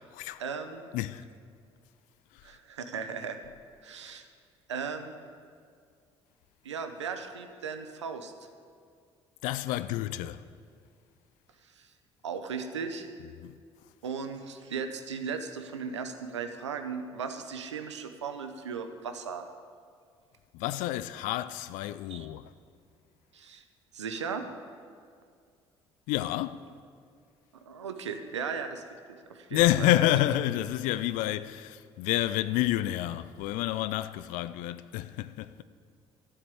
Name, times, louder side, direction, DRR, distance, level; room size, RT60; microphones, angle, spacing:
voice 1, 0.4-0.9 2.4-3.4 3.8-4.3 4.7-5.2 6.6-8.3 11.8-11.9 12.2-13.1 14.0-19.4 22.1-22.3 23.3-23.6 23.9-24.4 27.7-28.8 29.1-29.9, right 6 dB, 85° right, 0.8 m, -37 dB
voice 2, 0.9-1.3 2.3-2.4 9.4-10.4 13.4-13.5 20.5-22.5 26.1-26.6 29.5-35.6, left 14 dB, 65° left, 0.5 m, -29 dB
12.5 x 7.2 x 8.4 m
figure-of-eight pair, 50°, 15 cm